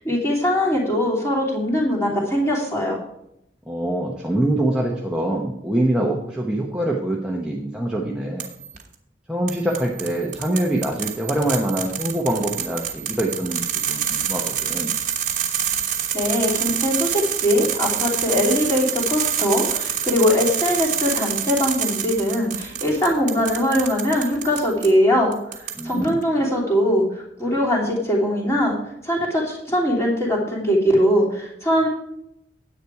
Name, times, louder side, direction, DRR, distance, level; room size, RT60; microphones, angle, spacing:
voice 1, 0.0-3.0 16.1-25.3 25.6-27.0 27.4-28.7 29.0-31.9, equal, 15° left, -4 dB, 2.9 m, -21 dB
voice 2, 3.7-8.5 9.3-14.9 25.7-26.2, right 1 dB, 5° right, -2 dB, 1.0 m, -24 dB
sound 1, 8.4-8.8 9.5-24.9 25.3-26.1, right 9 dB, 40° right, 1.2 m, -27 dB
10.0 x 8.4 x 4.8 m, 0.79 s
head